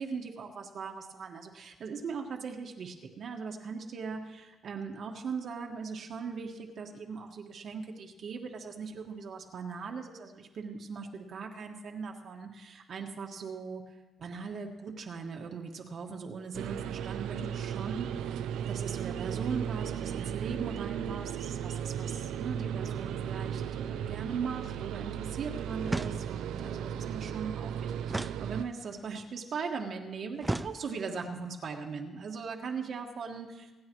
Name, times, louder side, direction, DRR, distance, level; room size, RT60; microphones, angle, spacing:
voice 1, 0.0-13.8 14.2-18.4 18.7-33.7, right 5 dB, 60° right, 2 dB, 1.6 m, -39 dB
sound 1, 16.5-28.6, right 9 dB, 90° right, 0.5 m, -36 dB
sound 2, 25.9-26.6 28.1-29.0 30.4-31.3, right 2 dB, 15° right, 0.4 m, -36 dB
26.0 x 9.5 x 3.1 m, 1.2 s
cardioid pair, 90°, 0 cm